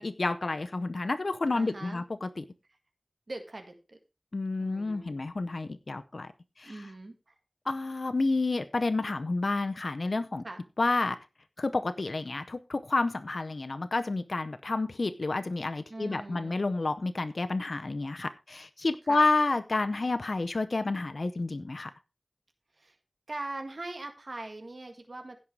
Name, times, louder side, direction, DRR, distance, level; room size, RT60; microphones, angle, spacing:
voice 1, 0.0-2.5 4.3-6.3 6.6-6.9 7.7-10.4 10.8-11.2 11.6-21.9, left 3 dB, 80° left, 10 dB, 0.7 m, -30 dB
voice 2, 1.5-2.0 3.3-4.0 4.6-5.2 6.6-7.3 10.4-10.6 15.9-16.6 19.0-19.2 22.8-23.0 23.3-25.4, right 2 dB, 70° right, 5 dB, 1.7 m, -41 dB
16.0 x 5.5 x 4.7 m, 0.29 s
wide cardioid pair, 45°, 0 cm